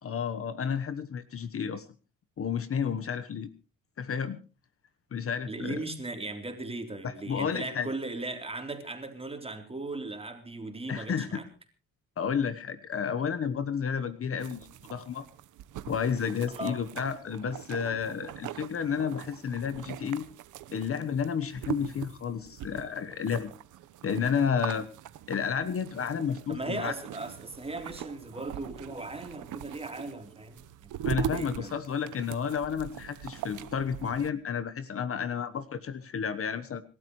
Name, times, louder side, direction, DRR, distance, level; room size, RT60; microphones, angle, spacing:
voice 1, 0.0-1.9 2.4-3.5 4.0-4.4 5.1-5.8 7.0-7.9 10.9-11.4 12.2-15.3 15.9-20.2 20.7-23.5 24.0-24.9 25.3-26.9 31.0-36.8, left 7 dB, 50° left, 1.2 m, -31 dB
voice 2, 5.5-11.5 16.5-16.8 26.5-31.7, right 2 dB, 20° right, 3.5 m, -38 dB
sound 1, 14.4-34.3, right 11 dB, 80° right, 1.1 m, -41 dB
27.0 x 12.5 x 3.1 m
cardioid pair, 90°, 30 cm